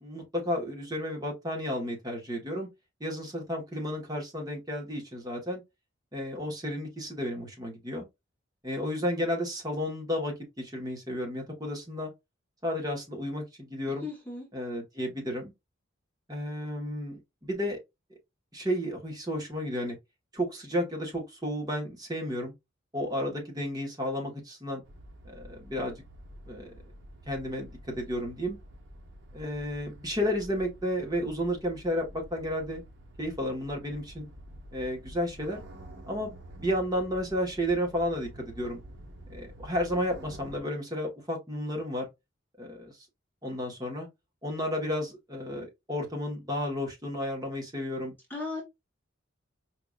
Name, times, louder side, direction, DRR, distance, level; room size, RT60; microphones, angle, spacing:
voice 1, 0.0-2.7 3.0-5.6 6.1-8.0 8.6-12.1 12.6-14.1 14.5-15.5 16.3-17.8 18.5-20.0 20.3-22.5 22.9-24.8 25.2-26.0 26.5-26.7 27.3-28.6 29.3-32.8 33.2-34.3 34.7-35.6 36.1-36.3 36.6-38.8 39.3-42.1 42.6-43.0 43.4-44.1 44.4-48.1, equal, 20° right, 1.2 m, -32 dB
voice 2, 14.0-14.5 48.3-48.6, left 3 dB, 10° left, 0.9 m, -36 dB
sound 1, 24.8-40.6, right 1 dB, 65° right, 0.9 m, -48 dB
4.7 x 2.5 x 2.3 m
head